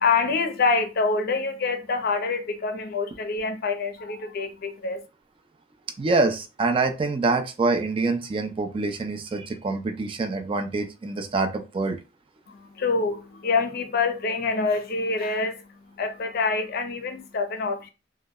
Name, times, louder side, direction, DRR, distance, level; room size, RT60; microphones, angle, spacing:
voice 1, 0.0-5.0 12.5-15.6 16.0-17.9, left 4 dB, 55° left, 0.5 m, -26 dB
voice 2, 6.0-12.0, right 3 dB, 30° right, 0.3 m, -25 dB
2.1 x 2.0 x 3.4 m
head